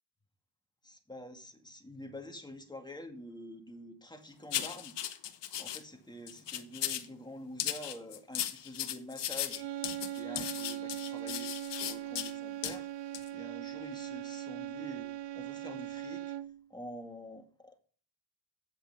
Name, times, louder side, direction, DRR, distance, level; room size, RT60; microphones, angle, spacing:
voice 1, 0.8-5.0 5.6-9.7 10.1-12.9 13.3-16.3 16.7-17.8, left 1 dB, 10° left, 2.1 m, -47 dB
sound 1, 4.5-5.8 6.3-7.1 7.6-12.3 12.6-12.8 13.1-13.3, left 11 dB, 85° left, 1.0 m, -36 dB
sound 2, 9.5-16.7, right 12 dB, 85° right, 0.5 m, -40 dB
8.8 x 7.9 x 5.7 m
cardioid pair, 80°, 41 cm